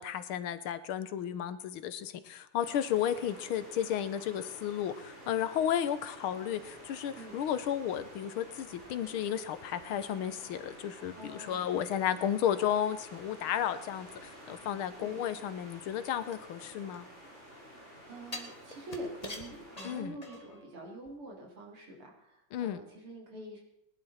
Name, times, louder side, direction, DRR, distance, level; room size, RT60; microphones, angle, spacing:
voice 1, 0.0-17.1 19.8-20.2 22.5-22.8, left 10 dB, 80° left, 13 dB, 1.7 m, -33 dB
sound 1, 2.6-20.0, equal, 30° right, 5.0 m, -51 dB
voice 2, 11.2-11.7 15.0-15.2 17.7-23.6, right 1 dB, 85° right, -1 dB, 4.5 m, -46 dB
sound 2, 16.3-17.5 18.3-20.7 21.0-21.1, left 2 dB, 20° left, 1.5 m, -45 dB
20.0 x 11.0 x 4.3 m, 0.84 s
omnidirectional pair, 2.3 m